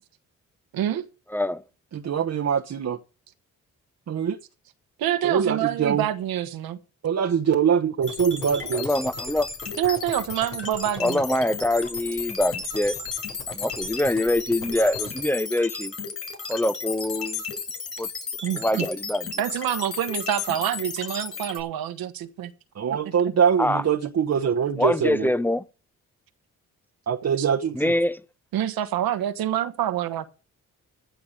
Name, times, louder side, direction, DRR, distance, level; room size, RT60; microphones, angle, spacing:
voice 1, 0.7-1.1 5.0-6.8 9.8-11.3 18.4-18.9 19.4-22.5 22.9-23.3 27.4-27.5 28.5-30.4, right 11 dB, 80° right, 1.3 m, -27 dB
voice 2, 1.9-3.0 4.1-4.4 5.2-6.0 7.0-8.9 22.8-25.3 27.1-27.9, right 7 dB, 50° right, 1.0 m, -23 dB
sound 1, 8.0-15.2, left 4 dB, 75° left, 7.5 m, -42 dB
sound 2, 8.0-21.6, left 5 dB, 40° left, 7.3 m, -34 dB
voice 3, 8.7-9.5 11.0-13.0 13.5-15.9 16.5-17.4 18.0-18.1 18.5-19.2 23.6-23.8 24.8-25.6 27.7-28.2, left 1 dB, 5° left, 0.7 m, -24 dB
14.5 x 6.8 x 6.5 m
supercardioid pair, 55°, 35 cm